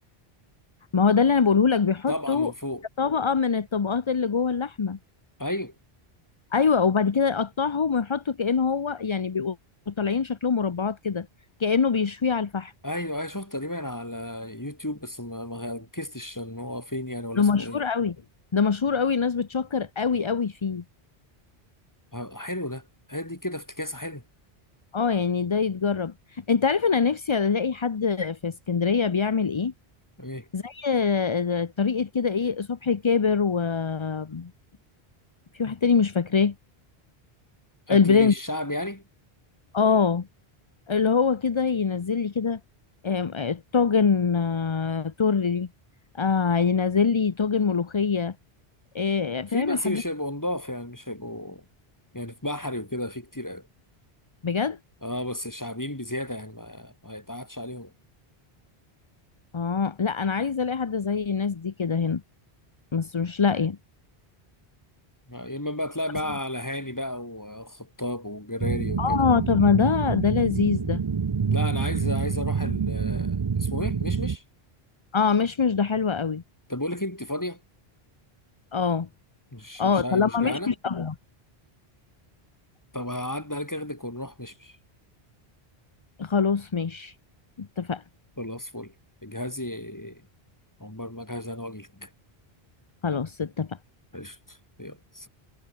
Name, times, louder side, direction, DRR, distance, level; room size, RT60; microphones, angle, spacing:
voice 1, 0.9-2.5 3.0-5.0 6.5-9.6 9.9-11.3 11.6-12.7 17.4-18.2 18.5-20.8 24.9-29.7 30.5-34.5 35.5-36.5 37.9-38.3 39.7-40.3 40.9-42.6 43.0-45.7 46.1-48.3 48.9-50.0 54.4-54.8 59.5-62.2 62.9-63.8 69.0-71.0 75.1-76.4 78.7-79.1 79.8-81.1 86.2-87.1 87.6-88.0 93.0-93.8, left 5 dB, 35° left, 0.6 m, -24 dB
voice 2, 2.1-2.8 5.4-5.7 12.8-17.8 22.1-24.2 30.2-30.5 37.9-39.0 49.5-51.6 52.1-53.7 55.0-57.9 65.3-69.2 71.5-74.4 76.7-77.6 79.5-80.7 82.9-84.8 88.4-88.9 89.2-90.2 90.8-92.1 94.1-95.3, left 1 dB, 15° left, 3.3 m, -33 dB
sound 1, 68.6-74.4, right 6 dB, 35° right, 0.5 m, -27 dB
omnidirectional pair, 1.1 m